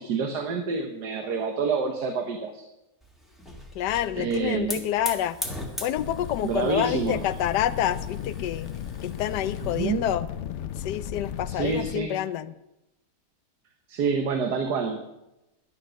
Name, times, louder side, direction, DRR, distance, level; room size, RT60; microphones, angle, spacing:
voice 1, 0.0-2.6 4.2-4.9 6.4-7.2 9.7-10.1 11.5-12.2 13.9-15.0, right 5 dB, 75° right, 5 dB, 1.6 m, -27 dB
Hiss / Fire, 3.0-9.9, left 1 dB, ahead, 1.6 m, -40 dB
voice 2, 3.7-5.4 5.8-8.7 9.0-10.3 10.8-12.5, left 11 dB, 85° left, 15 dB, 1.3 m, -28 dB
sound 1, 6.0-12.0, left 9 dB, 65° left, 0.7 m, -35 dB
11.5 x 10.5 x 6.3 m, 0.94 s
omnidirectional pair, 1.8 m